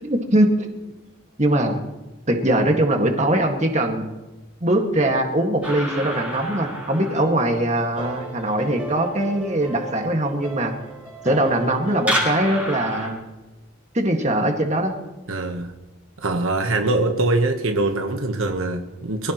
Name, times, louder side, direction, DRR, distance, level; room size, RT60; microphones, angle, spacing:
voice 1, 0.1-0.7 1.4-1.8 2.3-4.1 4.6-10.7 11.2-13.2 13.9-15.0, right 1 dB, 30° right, 3 dB, 1.9 m, -21 dB
sound 1, 5.6-13.1, right 1 dB, 5° right, 5.0 m, -31 dB
voice 2, 15.3-15.7 16.2-19.3, right 2 dB, 75° right, 5 dB, 1.2 m, -23 dB
24.5 x 16.5 x 3.1 m, 1.1 s
head